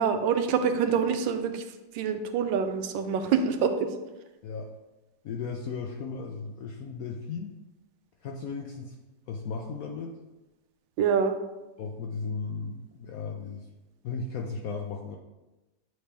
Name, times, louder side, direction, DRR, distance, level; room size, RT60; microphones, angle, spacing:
voice 1, 0.0-1.6 1.9-3.9 11.0-11.3, right 6 dB, 85° right, 7 dB, 1.3 m, -26 dB
voice 2, 5.2-7.5 8.2-8.9 9.3-10.2 11.8-13.7 14.0-15.2, left 5 dB, 75° left, 1 dB, 0.8 m, -35 dB
9.3 x 3.1 x 3.4 m, 1.1 s
omnidirectional pair, 2.0 m